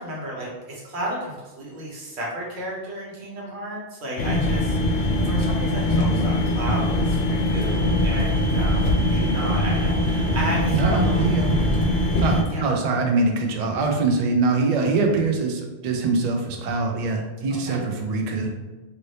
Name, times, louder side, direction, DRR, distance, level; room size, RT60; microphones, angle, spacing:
voice 1, 0.0-11.2 12.5-12.7 17.6-17.8, right 1 dB, 85° right, -3 dB, 1.2 m, -33 dB
sound 1, 4.2-12.4, left 1 dB, 75° left, 0.8 m, -22 dB
voice 2, 10.7-11.6 12.2-18.5, right 3 dB, 55° right, 2 dB, 0.5 m, -23 dB
2.7 x 2.7 x 3.2 m, 1.2 s
omnidirectional pair, 1.1 m